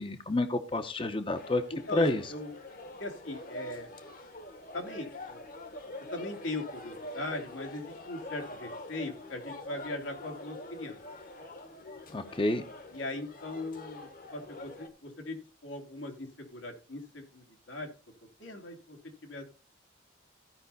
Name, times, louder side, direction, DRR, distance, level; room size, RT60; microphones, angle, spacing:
voice 1, 0.0-1.6 1.9-2.2 12.1-12.6, left 2 dB, 25° left, 8 dB, 0.7 m, -29 dB
sound 1, 1.4-14.9, left 1 dB, 45° left, 1.1 m, -45 dB
voice 2, 1.9-2.5 3.0-3.9 4.7-5.4 6.1-11.0 12.9-17.9 18.4-19.0 19.2-19.4, left 2 dB, 90° left, 3 dB, 2.5 m, -39 dB
15.5 x 5.5 x 4.1 m, 0.36 s
head